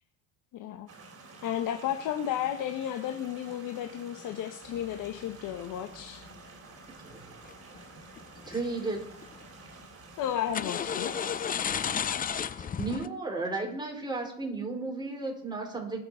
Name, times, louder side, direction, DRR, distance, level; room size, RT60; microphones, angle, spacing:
voice 1, 0.5-0.9 1.4-6.2 10.2-11.1, left 10 dB, 60° left, 6 dB, 1.3 m, -33 dB
sound 1, 0.9-11.9, right 3 dB, 40° right, 4.3 m, -50 dB
sound 2, 4.8-6.3 7.4-7.8 8.2-8.7 9.0-9.5 10.5-13.1, left 8 dB, 25° left, 0.5 m, -33 dB
voice 2, 7.0-7.3 8.5-9.1 12.3-16.0, right 3 dB, 10° right, 1 dB, 4.8 m, -34 dB
20.5 x 6.9 x 5.1 m, 0.66 s
supercardioid pair, 100°, 35 cm